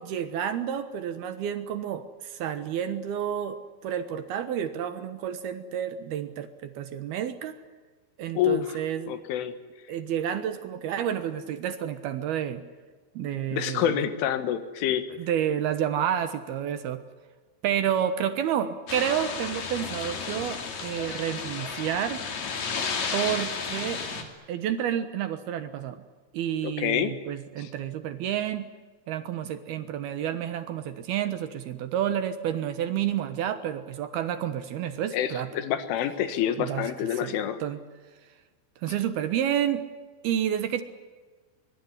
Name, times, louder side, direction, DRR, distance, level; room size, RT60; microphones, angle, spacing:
voice 1, 0.0-3.6 3.8-7.6 8.2-9.2 9.9-12.6 13.2-14.0 15.2-17.0 17.6-22.2 23.1-26.0 26.3-28.7 29.1-35.5 36.6-37.8 38.8-39.8 40.2-40.8, right 9 dB, 65° right, 11 dB, 2.7 m, -30 dB
voice 2, 8.4-8.8 9.1-9.5 13.5-15.1 26.6-27.1 27.6-27.7 35.1-37.6, left 10 dB, 85° left, 11 dB, 4.1 m, -27 dB
sound 1, 18.9-24.2, left 5 dB, 45° left, 3.6 m, -33 dB
24.0 x 22.5 x 9.8 m, 1.4 s
omnidirectional pair, 5.5 m